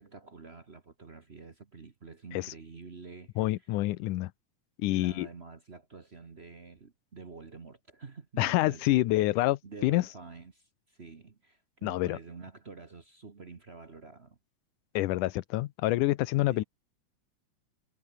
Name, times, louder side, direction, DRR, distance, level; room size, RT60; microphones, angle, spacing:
voice 1, 0.0-3.7 4.9-14.4 16.5-16.6, right 4 dB, 60° right, 0.6 m, -48 dB
voice 2, 3.4-4.3 4.8-5.3 8.4-9.6 9.8-10.0 11.8-12.2 14.9-16.6, left 17 dB, 80° left, 2.3 m, -27 dB
omnidirectional pair, 3.7 m